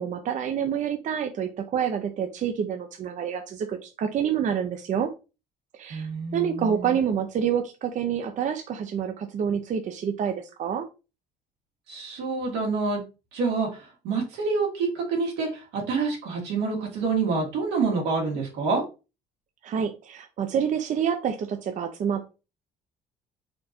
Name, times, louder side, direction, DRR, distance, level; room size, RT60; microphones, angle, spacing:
voice 1, 0.0-5.1 5.7-10.9 19.6-22.3, right 8 dB, 45° right, 6 dB, 0.6 m, -28 dB
voice 2, 5.9-7.0 11.9-13.0 13.3-18.8, right 4 dB, 90° right, -1 dB, 2.1 m, -27 dB
4.4 x 2.6 x 4.2 m, 0.30 s
cardioid pair, 110°, 17 cm